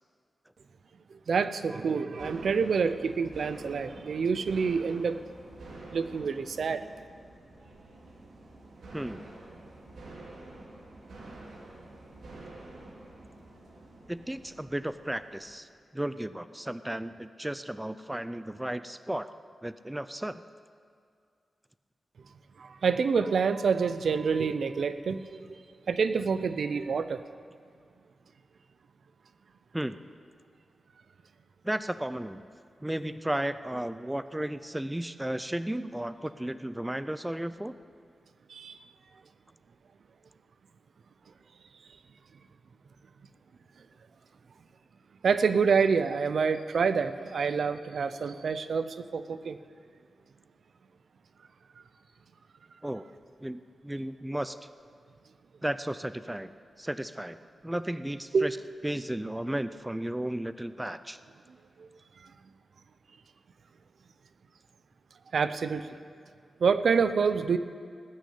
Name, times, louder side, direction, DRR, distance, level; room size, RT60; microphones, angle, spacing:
voice 1, 1.3-5.2 5.9-6.9 22.6-25.4 25.9-27.2 38.5-38.7 45.2-49.6 58.3-58.5 61.8-61.9 65.3-65.9 66.6-67.6, right 5 dB, 70° right, 12 dB, 0.6 m, -27 dB
sound 1, 2.1-15.6, right 2 dB, 90° right, 2.5 m, -48 dB
voice 2, 8.9-9.2 14.1-15.7 15.9-19.3 19.6-20.4 29.7-30.0 31.6-32.5 32.8-37.8 52.8-53.1 53.4-54.6 55.6-56.5 56.8-57.4 57.6-58.6 58.8-61.2, right 1 dB, 10° right, 12 dB, 0.4 m, -34 dB
19.5 x 6.5 x 8.5 m, 2.2 s
wide cardioid pair, 110°, 0 cm